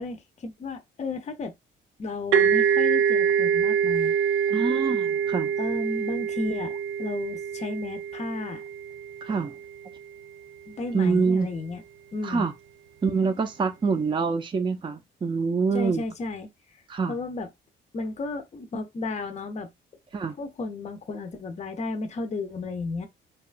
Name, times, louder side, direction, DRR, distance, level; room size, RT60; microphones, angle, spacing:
voice 1, 0.0-1.5 2.0-4.1 5.6-8.6 10.7-11.8 12.1-12.5 13.9-14.0 15.7-16.8 17.1-17.5 17.9-19.7 20.4-23.1, left 3 dB, 35° left, 0.6 m, -33 dB
sound 1, 2.3-9.9, right 7 dB, 85° right, 0.4 m, -25 dB
voice 2, 4.5-5.5 9.2-9.5 10.9-11.5 12.2-12.5 13.0-16.0 16.9-17.1 20.1-20.4, right 5 dB, 25° right, 0.4 m, -25 dB
2.9 x 2.2 x 2.4 m
cardioid pair, 90°, 20 cm